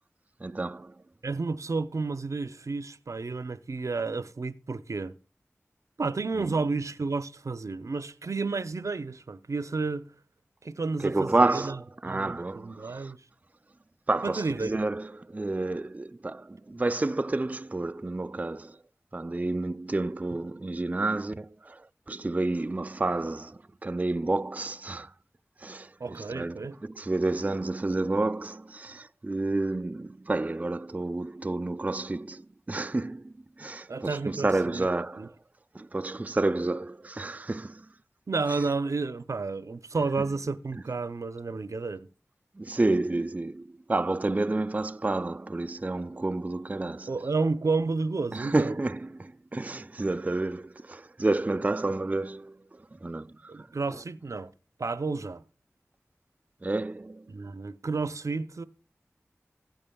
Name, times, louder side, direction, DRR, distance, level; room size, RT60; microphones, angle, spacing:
voice 1, 0.4-0.9 6.4-6.5 11.0-13.1 14.1-18.8 19.1-25.1 25.6-35.3 35.7-37.9 38.5-38.6 42.6-47.1 48.3-54.0 56.6-57.3, right 2 dB, 30° right, 0.3 m, -30 dB
voice 2, 1.2-5.1 6.0-10.1 10.6-11.7 12.1-13.2 14.2-14.8 26.0-26.8 33.9-34.9 35.2-35.3 38.3-42.1 47.1-48.8 53.5-54.5 54.8-55.4 57.3-58.6, right 3 dB, 80° right, 0.6 m, -31 dB
16.0 x 8.9 x 2.2 m
wide cardioid pair, 50°, 5 cm